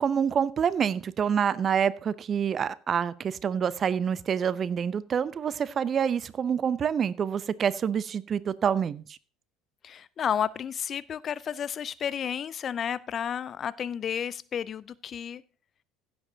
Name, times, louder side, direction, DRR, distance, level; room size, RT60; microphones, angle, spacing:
voice 1, 0.0-9.2, right 7 dB, 35° right, 0.5 m, -27 dB
voice 2, 9.8-15.4, left 8 dB, 40° left, 0.4 m, -32 dB
15.5 x 7.6 x 2.7 m
figure-of-eight pair, 65°, 0 cm